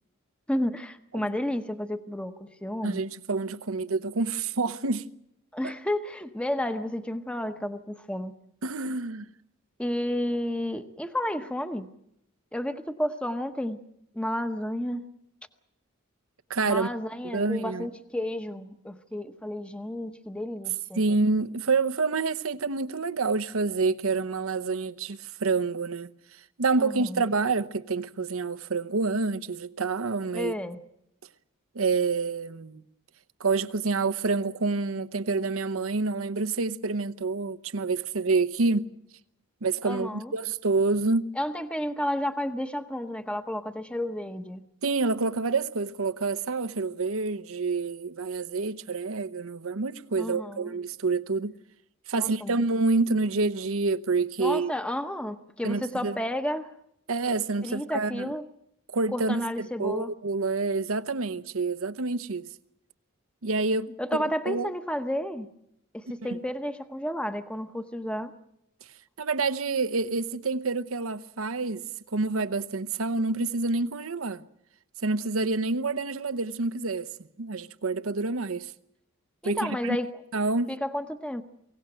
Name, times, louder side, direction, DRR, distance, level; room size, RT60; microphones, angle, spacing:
voice 1, 0.5-3.0 5.5-8.3 9.8-11.9 12.5-13.8 14.1-15.0 16.6-21.0 26.8-27.2 30.3-30.8 39.8-40.3 41.3-44.7 50.2-50.6 52.2-52.6 54.4-56.7 57.6-58.4 59.1-60.1 64.0-65.5 65.9-68.3 79.4-80.1 80.7-81.4, left 1 dB, 5° left, 0.8 m, -31 dB
voice 2, 2.8-5.1 8.6-9.3 16.5-16.9 17.3-17.9 20.9-26.1 26.6-30.5 31.7-32.8 33.4-38.9 39.6-41.3 44.8-51.5 52.1-54.7 55.6-56.2 57.1-58.3 58.9-62.5 63.4-64.7 66.2-66.4 69.2-71.8 72.1-74.4 75.0-77.1 77.4-78.7 79.4-80.0 80.3-80.7, right 3 dB, 90° right, 0.9 m, -28 dB
24.0 x 17.0 x 9.0 m
head